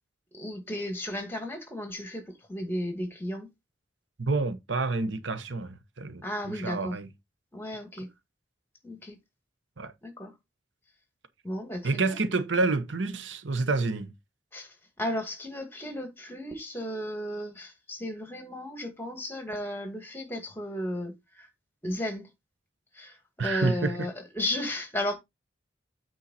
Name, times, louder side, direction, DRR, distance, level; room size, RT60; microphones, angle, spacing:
voice 1, 0.3-3.5 6.2-6.9 7.5-8.1 8.8-9.2 10.0-10.3 11.4-12.2 14.5-21.5 21.8-22.3 22.9-25.2, left 1 dB, 10° left, 2.2 m, -34 dB
voice 2, 4.2-7.1 9.8-9.9 11.8-14.1 23.4-24.1, right 3 dB, 85° right, 1.0 m, -28 dB
8.8 x 4.6 x 4.1 m
head